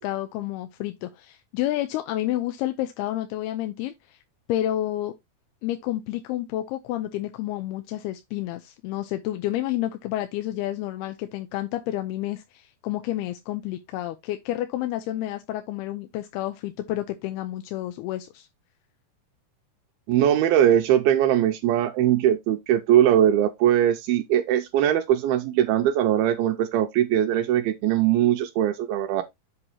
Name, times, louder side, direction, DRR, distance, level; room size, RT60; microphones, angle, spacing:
voice 1, 0.0-4.2 4.5-5.1 5.6-18.5, left 14 dB, 90° left, 2.6 m, -30 dB
voice 2, 20.1-29.2, right 11 dB, 85° right, 2.5 m, -21 dB
7.8 x 3.0 x 5.5 m
omnidirectional pair, 4.5 m